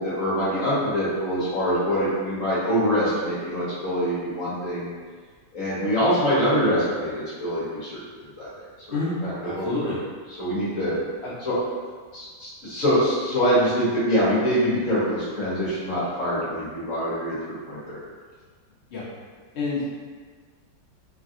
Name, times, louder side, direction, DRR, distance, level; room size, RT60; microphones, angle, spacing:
voice 1, 0.0-4.9 5.5-8.0 8.4-8.5 8.9-9.9 10.4-11.0 11.4-11.5 12.1-18.0, equal, 50° left, -10 dB, 1.3 m, -24 dB
voice 2, 9.4-10.0 11.2-11.3 18.9-19.0 19.5-19.9, left 3 dB, 85° left, -8 dB, 0.5 m, -28 dB
3.3 x 2.4 x 2.6 m, 1.5 s
omnidirectional pair, 1.9 m